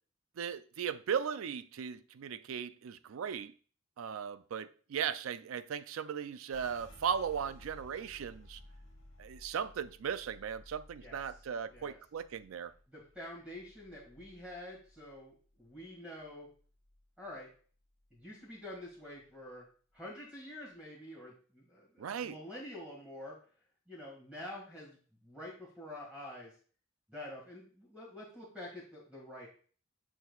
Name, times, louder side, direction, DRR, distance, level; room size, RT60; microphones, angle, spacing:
voice 1, 0.4-3.5 4.0-8.6 9.2-12.7 22.0-22.4, right 7 dB, 85° right, 0.4 m, -37 dB
sound 1, 6.5-15.9 16.2-17.4 17.8-18.2 18.7-19.3, left 1 dB, 80° left, 1.7 m, -57 dB
voice 2, 12.9-16.5 17.2-17.5 18.1-19.6 19.9-23.4 23.9-26.5 27.1-29.5, left 1 dB, 5° right, 1.9 m, -47 dB
6.9 x 6.0 x 2.3 m
head